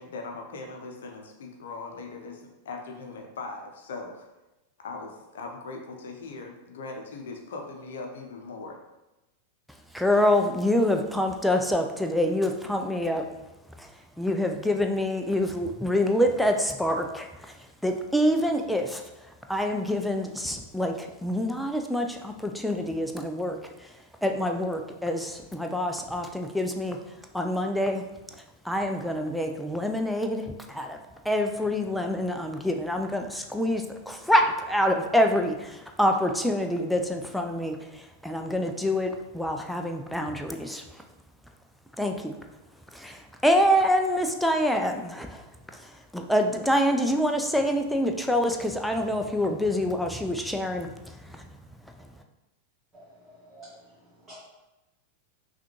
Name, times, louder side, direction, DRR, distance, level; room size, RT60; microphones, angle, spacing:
voice 1, 0.0-4.3 4.8-8.8, left 3 dB, 60° left, 3 dB, 0.6 m, -40 dB
voice 2, 9.9-13.2 13.8-13.9 14.2-17.5 17.8-19.0 19.5-23.9 24.2-27.0 27.3-28.0 28.6-31.0 31.2-40.8 42.0-42.4 42.9-45.4 45.7-51.4, left 1 dB, ahead, 3 dB, 0.4 m, -26 dB
voice 3, 52.9-54.3, right 1 dB, 20° right, -10 dB, 1.4 m, -51 dB
5.6 x 2.4 x 3.0 m, 1.0 s
figure-of-eight pair, 90°, 0 cm